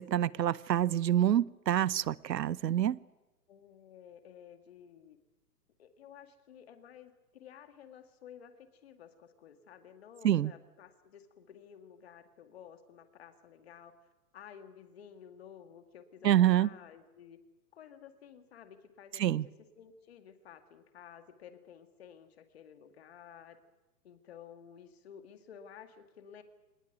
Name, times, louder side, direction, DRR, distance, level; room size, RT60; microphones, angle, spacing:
voice 1, 0.0-3.0 10.2-10.5 16.2-16.7 19.2-19.5, right 11 dB, 80° right, 0.9 m, -27 dB
voice 2, 3.5-5.2 5.8-13.9 14.3-17.4 17.7-19.4 19.8-23.6 24.0-26.4, left 8 dB, 40° left, 2.2 m, -53 dB
25.0 x 20.0 x 9.2 m
hypercardioid pair, 175°, 49 cm